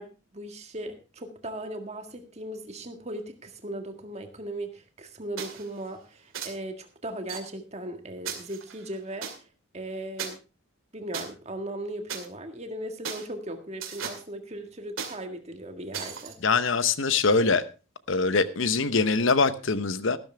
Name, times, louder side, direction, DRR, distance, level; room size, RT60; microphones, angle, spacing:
voice 1, 0.0-9.5 9.7-10.4 10.9-16.4, right 1 dB, 30° right, 1.7 m, -38 dB
sound 1, 5.4-5.7 6.3-6.5 7.3-7.4 8.2-9.3 10.2-10.3 11.1-11.2 12.1-12.3 13.0-13.2 13.8-14.2 15.0-15.1 15.9-16.3, right 7 dB, 70° right, 2.4 m, -35 dB
voice 2, 16.4-17.6 18.1-20.2, left 4 dB, 60° left, 0.9 m, -23 dB
14.0 x 12.5 x 3.4 m
head